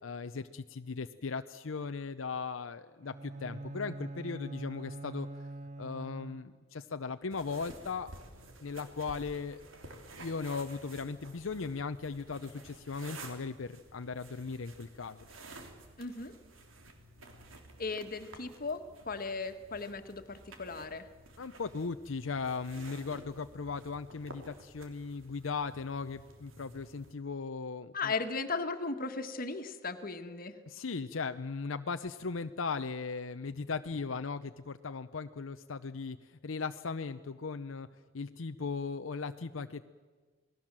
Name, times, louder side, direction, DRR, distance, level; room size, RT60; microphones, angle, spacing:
voice 1, 0.0-5.3 5.8-8.1 8.6-9.6 10.2-15.2 21.4-28.1 30.7-37.9 38.1-39.8, left 4 dB, 80° left, 9 dB, 0.7 m, -38 dB
Bowed string instrument, 3.0-6.8, right 2 dB, 40° right, 0.7 m, -44 dB
sound 1, 7.3-27.1, right 2 dB, 85° right, 3.4 m, -52 dB
voice 2, 16.0-16.3 17.8-21.0 27.9-30.5, left 4 dB, 45° left, 8 dB, 1.6 m, -37 dB
28.0 x 19.5 x 7.5 m, 1.4 s
head